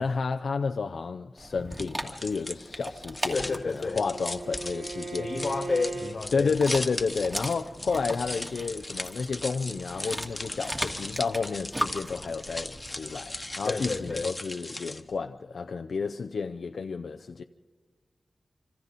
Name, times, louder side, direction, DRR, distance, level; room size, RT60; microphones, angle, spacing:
voice 1, 0.0-5.3 6.3-17.4, left 4 dB, 85° left, 0.6 m, -31 dB
Dog, 1.4-14.3, right 1 dB, 20° right, 2.4 m, -39 dB
sound 1, 1.7-15.2, left 2 dB, 25° left, 1.2 m, -38 dB
Bowed string instrument, 3.0-6.2, right 3 dB, 65° right, 1.4 m, -39 dB
voice 2, 3.3-4.0 5.2-6.5 13.6-14.3, left 3 dB, 55° left, 1.4 m, -30 dB
26.5 x 26.0 x 4.2 m
wide cardioid pair, 85°, 0 cm